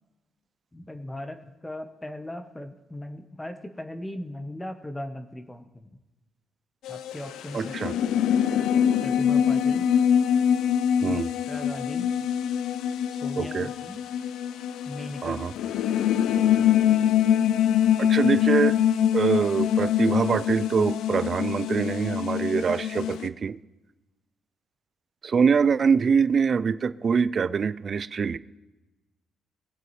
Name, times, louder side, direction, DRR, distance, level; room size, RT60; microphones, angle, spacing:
voice 1, 0.7-5.9 6.9-8.0 9.0-9.9 11.0-11.2 11.5-12.1 13.1-14.0 14.9-15.4, left 1 dB, 10° left, 7 dB, 0.8 m, -38 dB
sound 1, 6.8-23.3, left 9 dB, 85° left, 0.4 m, -24 dB
voice 2, 7.5-8.0 11.0-11.3 13.4-13.7 15.2-15.5 18.0-18.8 19.1-23.6 25.2-28.4, right 6 dB, 45° right, 17 dB, 0.4 m, -24 dB
21.5 x 7.6 x 3.1 m, 1.1 s
cardioid pair, 90°, 0 cm